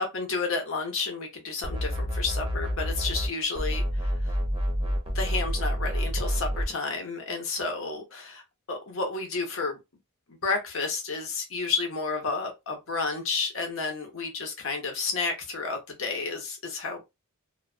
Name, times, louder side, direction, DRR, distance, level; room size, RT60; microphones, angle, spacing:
voice 1, 0.0-4.4 4.8-8.4 8.7-9.8 10.3-17.0, left 4 dB, 65° left, 0.9 m, -31 dB
sound 1, 1.6-3.3 3.5-6.7, equal, 25° right, 0.6 m, -28 dB
2.3 x 2.2 x 2.3 m
head